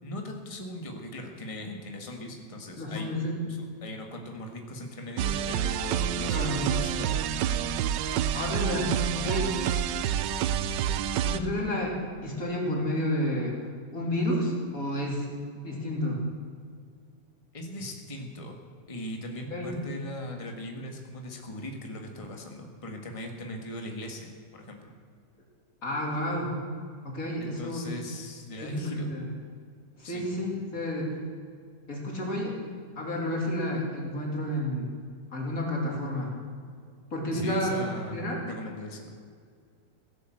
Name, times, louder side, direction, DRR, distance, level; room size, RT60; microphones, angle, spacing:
voice 1, 0.0-3.1 3.5-7.2 17.5-18.6 18.9-24.9 27.4-29.1 30.0-30.2 37.3-39.1, left 1 dB, 20° left, 3 dB, 1.6 m, -39 dB
voice 2, 2.8-3.5 6.3-6.6 8.3-9.7 11.2-12.0 12.2-13.5 13.9-15.2 15.6-16.2 19.5-19.7 25.8-26.5 27.1-27.9 28.6-29.3 30.0-31.1 31.9-32.6 33.0-34.9 35.3-36.3 37.1-37.7 38.1-38.4, left 1 dB, 50° left, -1 dB, 3.5 m, -30 dB
sound 1, 5.2-11.4, right 9 dB, 85° right, 1.3 m, -28 dB
16.0 x 11.0 x 7.8 m, 2.1 s
omnidirectional pair, 1.9 m